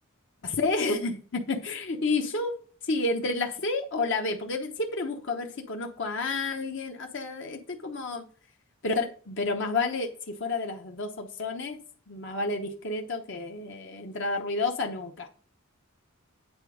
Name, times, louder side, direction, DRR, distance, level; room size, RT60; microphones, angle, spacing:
voice 1, 0.4-2.6 2.8-8.2 8.8-11.8 12.1-15.3, left 3 dB, 60° left, 3 dB, 1.0 m, -30 dB
9.0 x 4.2 x 5.0 m, 0.42 s
head